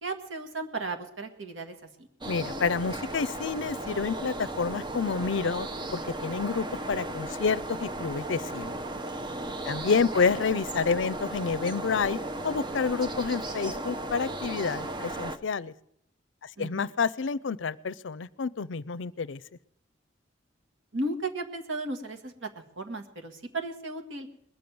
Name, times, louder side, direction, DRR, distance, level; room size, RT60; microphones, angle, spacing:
voice 1, 0.0-2.1 9.7-10.0 16.6-16.9 20.9-24.3, right 2 dB, 90° right, 7 dB, 1.9 m, -35 dB
sound 1, 2.2-15.4, right 1 dB, 25° right, 0.8 m, -35 dB
voice 2, 2.3-8.8 9.6-12.2 12.4-15.7 16.6-19.4, left 5 dB, 75° left, 19 dB, 0.5 m, -29 dB
21.0 x 7.0 x 9.3 m, 0.73 s
head